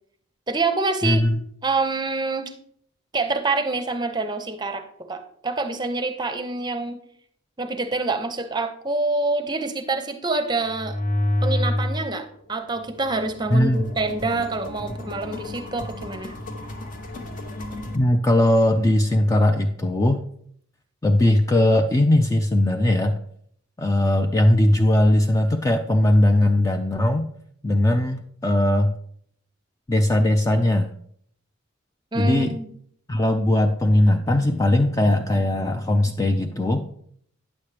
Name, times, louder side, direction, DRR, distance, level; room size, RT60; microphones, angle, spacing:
voice 1, 0.5-1.2 1.6-2.5 3.1-7.0 7.6-11.0 11.4-16.3 32.1-32.7, right 3 dB, 20° right, 8 dB, 0.7 m, -26 dB
voice 2, 1.0-1.4 13.5-13.8 17.9-20.3 21.0-23.2 23.8-27.3 27.6-28.9 29.9-30.9 32.2-32.6 33.1-36.9, left 1 dB, 15° left, 5 dB, 0.3 m, -19 dB
sound 1, 10.7-12.1 12.5-18.0, left 1 dB, 40° left, 0.7 m, -29 dB
9.3 x 7.1 x 3.3 m, 0.63 s
head